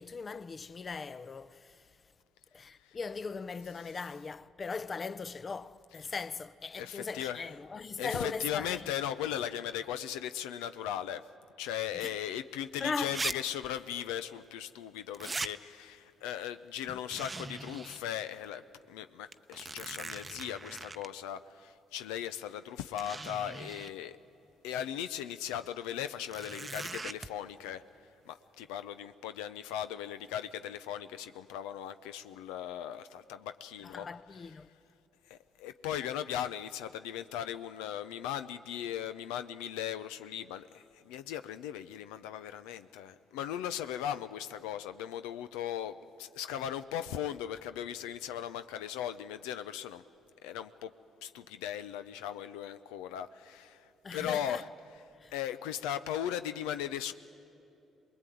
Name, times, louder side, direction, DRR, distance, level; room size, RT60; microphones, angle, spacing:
voice 1, 0.0-2.0 2.5-8.9 11.9-12.2 12.8-13.2 16.9-17.0 33.8-34.7 54.0-54.6 55.2-55.3, left 4 dB, 40° left, 0.6 m, -39 dB
voice 2, 6.8-7.5 8.0-11.3 11.6-18.6 18.9-24.2 24.6-27.8 28.3-34.1 35.3-50.0 50.4-50.9 51.2-54.6 55.3-57.1, left 10 dB, 90° left, 0.5 m, -38 dB
sound 1, 12.4-12.5 13.1-13.3 13.6-13.7 15.1-15.5 17.1-18.0 18.4-18.5 19.3-21.1 22.2-22.3 23.0-23.9 26.2-27.3, right 3 dB, 25° right, 0.7 m, -40 dB
23.0 x 20.5 x 9.2 m
supercardioid pair, 65°, 0 cm